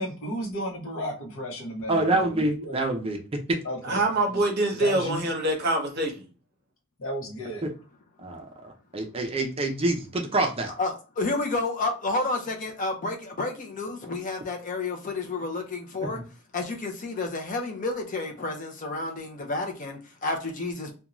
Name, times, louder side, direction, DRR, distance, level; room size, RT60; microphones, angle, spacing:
voice 1, 0.0-2.8 3.6-4.4 4.8-5.3 7.0-7.7, equal, 70° left, 0.8 m, -34 dB
voice 2, 1.9-3.2 3.5-3.6 7.6-7.7 8.2-10.7 16.0-16.2, right 2 dB, 25° right, 0.4 m, -26 dB
voice 3, 3.8-6.1, right 2 dB, 50° right, 0.8 m, -25 dB
voice 4, 10.8-16.2 16.5-20.9, left 3 dB, 40° left, 0.5 m, -30 dB
2.5 x 2.2 x 2.9 m
head